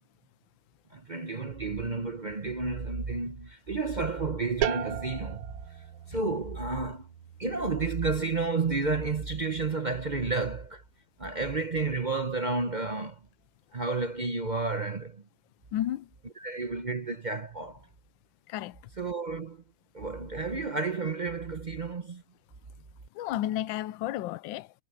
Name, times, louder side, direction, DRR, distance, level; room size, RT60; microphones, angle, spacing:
voice 1, 0.9-7.1 7.4-10.8 11.2-13.2 13.7-15.2 16.4-17.9 19.0-19.6 19.9-22.2, right 3 dB, 55° right, 0.4 m, -31 dB
sound 1, 4.6-10.1, right 10 dB, 75° right, 1.7 m, -38 dB
voice 2, 15.7-16.1 18.5-18.8 23.1-24.7, left 13 dB, 75° left, 1.3 m, -32 dB
omnidirectional pair, 2.3 m